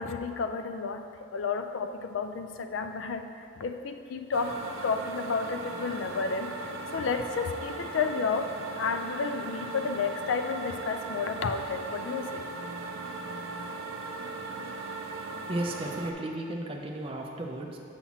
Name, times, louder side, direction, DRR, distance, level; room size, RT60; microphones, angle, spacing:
voice 1, 0.0-3.3 3.6-4.6 4.8-8.5 8.8-12.4, left 5 dB, 65° left, 7 dB, 0.3 m, -31 dB
sound 1, 4.3-16.1, right 3 dB, 80° right, 0.5 m, -38 dB
voice 2, 15.5-17.8, right 1 dB, 25° right, 0 dB, 0.4 m, -34 dB
7.1 x 5.6 x 2.9 m, 2.5 s
head